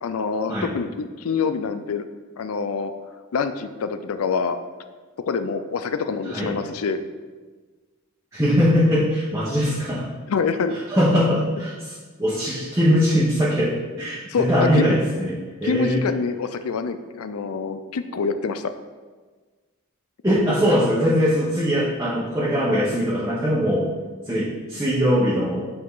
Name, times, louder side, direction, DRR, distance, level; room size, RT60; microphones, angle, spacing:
voice 1, 0.0-2.0 2.4-2.9 3.3-4.6 5.2-7.0 10.3-11.0 14.3-14.9 15.6-18.7 20.3-20.4, left 5 dB, 85° left, 10 dB, 0.5 m, -26 dB
voice 2, 8.3-10.1 10.9-16.0 20.2-23.9 24.3-25.6, equal, 15° right, -8 dB, 1.0 m, -21 dB
8.5 x 4.7 x 3.9 m, 1.4 s
head